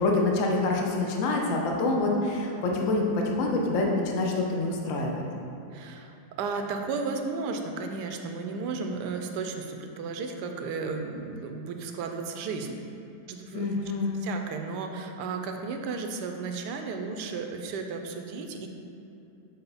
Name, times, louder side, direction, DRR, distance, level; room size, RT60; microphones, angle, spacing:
voice 1, 0.0-5.2 13.5-14.2, left 2 dB, 60° left, 0 dB, 1.0 m, -26 dB
voice 2, 5.7-12.8 13.3-13.7 14.2-18.7, right 4 dB, 85° right, 4 dB, 1.2 m, -34 dB
6.9 x 4.1 x 4.0 m, 2.8 s
omnidirectional pair, 1.8 m